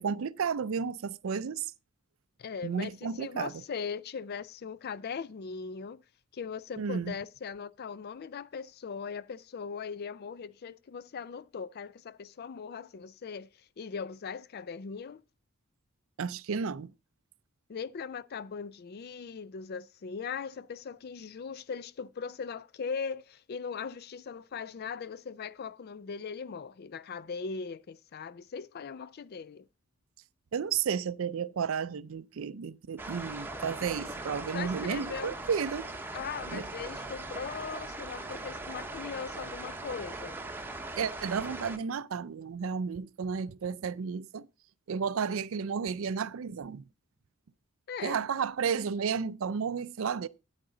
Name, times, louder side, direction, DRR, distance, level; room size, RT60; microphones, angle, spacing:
voice 1, 0.0-1.7 2.6-3.5 6.8-7.1 16.2-16.9 30.5-35.9 36.5-36.7 41.0-44.5 44.9-46.8 48.0-50.3, right 6 dB, 65° right, 0.4 m, -32 dB
voice 2, 2.4-6.0 6.3-15.2 17.7-29.7 34.5-35.4 36.1-40.4 47.9-48.2, left 6 dB, 45° left, 0.4 m, -39 dB
sound 1, 33.0-41.8, right 2 dB, 10° right, 0.9 m, -40 dB
8.9 x 8.6 x 3.8 m
head